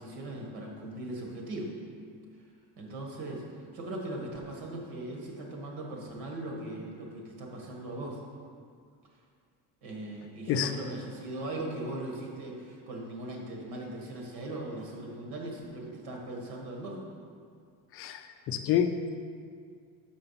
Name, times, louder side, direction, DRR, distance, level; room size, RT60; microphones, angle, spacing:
voice 1, 0.0-1.7 2.8-8.2 9.8-17.0, right 1 dB, 70° right, 0 dB, 1.6 m, -39 dB
voice 2, 17.9-19.1, left 8 dB, 40° left, 8 dB, 0.4 m, -28 dB
6.9 x 5.0 x 5.6 m, 2.2 s
cardioid pair, 170°, 37 cm